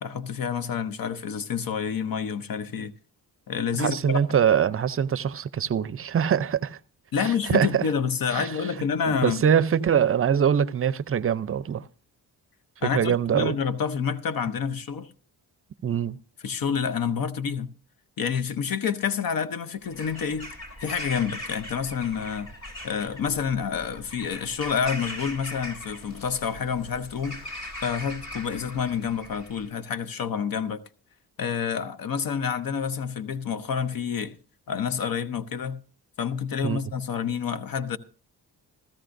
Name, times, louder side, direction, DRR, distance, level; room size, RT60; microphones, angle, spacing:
voice 1, 0.0-2.9 3.5-4.2 7.1-9.4 12.8-15.1 16.4-17.7 18.2-20.5 20.8-22.5 22.8-30.8 31.4-34.4 34.7-35.8 36.2-38.0, left 7 dB, 55° left, 0.8 m, -28 dB
voice 2, 3.8-6.8 7.2-7.9 8.3-8.6 9.1-11.9 12.8-13.5 15.8-16.2 36.6-36.8, right 8 dB, 35° right, 0.6 m, -23 dB
Bird vocalization bird call bird song / Crow, 19.8-29.7, left 1 dB, 40° left, 3.3 m, -40 dB
15.5 x 13.0 x 2.6 m
cardioid pair, 70°, 40 cm